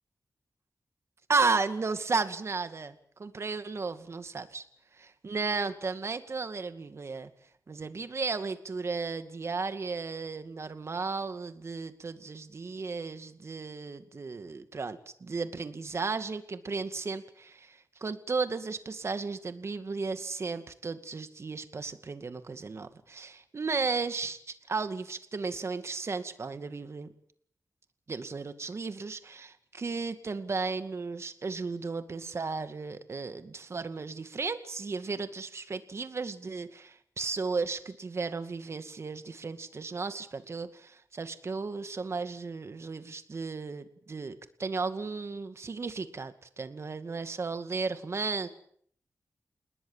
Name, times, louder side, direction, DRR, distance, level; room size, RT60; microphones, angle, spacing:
voice 1, 1.3-2.9 3.2-4.6 5.0-7.3 7.7-24.4 24.7-27.1 28.1-48.5, right 4 dB, 50° right, 10 dB, 2.3 m, -34 dB
28.5 x 20.0 x 7.4 m, 0.62 s
wide cardioid pair, 90°, 6 cm